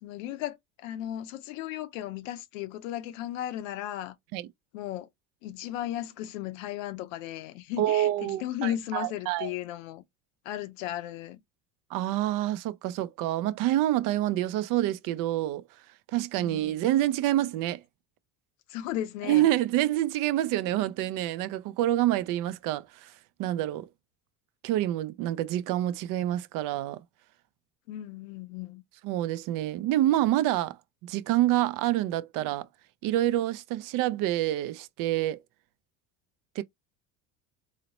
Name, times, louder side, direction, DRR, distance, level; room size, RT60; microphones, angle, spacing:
voice 1, 0.0-4.2 4.7-5.1 5.4-10.0 10.4-11.4 16.4-16.8 18.7-19.5 27.9-28.8, left 12 dB, 90° left, 0.6 m, -35 dB
voice 2, 7.8-9.5 11.9-15.6 16.1-17.8 19.3-23.1 23.4-23.9 24.6-27.0 29.0-30.8 31.0-32.7 33.0-35.4 36.6-36.7, right 14 dB, 60° right, 0.5 m, -27 dB
3.9 x 2.0 x 2.9 m
supercardioid pair, 105°, 38 cm